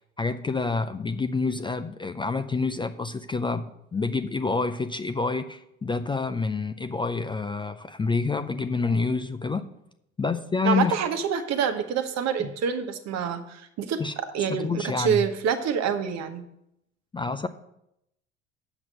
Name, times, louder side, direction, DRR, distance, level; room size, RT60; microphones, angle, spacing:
voice 1, 0.0-3.6 3.9-9.7 10.2-10.9 14.0-14.1 14.5-15.2 17.1-17.5, left 4 dB, 15° left, 9 dB, 0.4 m, -28 dB
voice 2, 10.6-16.4, right 7 dB, 50° right, 8 dB, 1.2 m, -27 dB
7.9 x 5.9 x 6.6 m, 0.81 s
hypercardioid pair, 70°, 34 cm